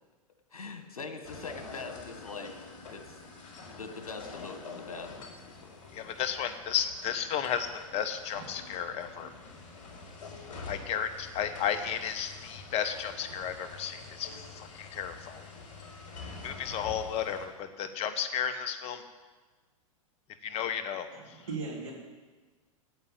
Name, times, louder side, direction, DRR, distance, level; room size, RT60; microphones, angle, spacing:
voice 1, 0.5-2.5 2.9-6.2, left 4 dB, 85° left, 6 dB, 1.7 m, -43 dB
sound 1, 1.2-17.5, left 4 dB, 55° left, 4.3 m, -46 dB
voice 2, 5.9-9.3 10.7-15.5 16.4-19.0 20.4-21.4, left 8 dB, 35° left, 9 dB, 1.1 m, -33 dB
voice 3, 21.1-21.9, right 4 dB, 65° right, -1 dB, 3.9 m, -38 dB
8.9 x 8.8 x 9.0 m, 1.3 s
hypercardioid pair, 110°, 18 cm